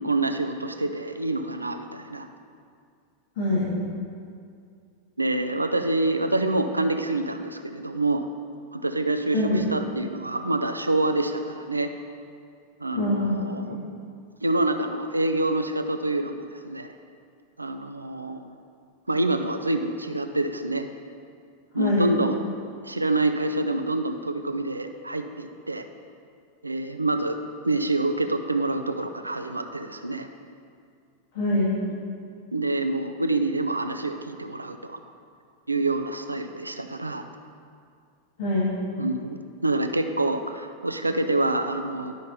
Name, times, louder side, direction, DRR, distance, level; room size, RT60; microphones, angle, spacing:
voice 1, 0.0-2.3 5.2-8.2 8.7-11.9 12.8-13.7 14.4-16.9 17.6-18.5 19.1-20.9 21.7-22.4 22.8-25.9 26.6-27.4 27.6-30.3 32.5-35.0 35.7-37.2 39.0-42.1, right 2 dB, 80° right, 7 dB, 0.4 m, -26 dB
voice 2, 3.4-3.7 9.3-9.6 12.9-13.4 21.8-22.1 31.3-31.8 38.4-38.8, left 1 dB, 50° left, -6 dB, 1.7 m, -24 dB
11.0 x 5.2 x 4.1 m, 2.3 s
figure-of-eight pair, 90°, 0 cm